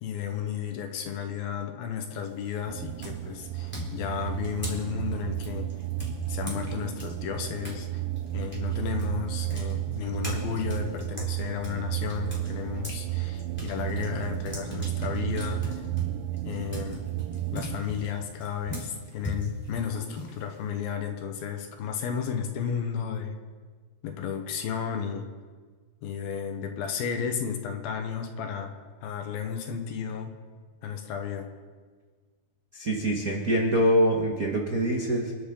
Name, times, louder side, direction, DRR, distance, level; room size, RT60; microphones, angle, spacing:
voice 1, 0.0-5.7 6.3-8.0 8.3-15.9 16.5-17.0 17.5-23.3 24.0-25.3 26.0-28.7 29.0-30.3 30.8-31.5, left 7 dB, 75° left, 5 dB, 3.0 m, -33 dB
sound 1, 2.1-2.5 3.0-7.8 8.2-13.0 13.4-20.8, equal, 5° left, 3.1 m, -40 dB
sound 2, 2.7-17.8, right 16 dB, 85° right, 2.0 m, -33 dB
voice 2, 32.7-35.3, equal, 65° right, -1 dB, 0.8 m, -24 dB
27.5 x 11.0 x 3.9 m, 1.5 s
omnidirectional pair, 4.5 m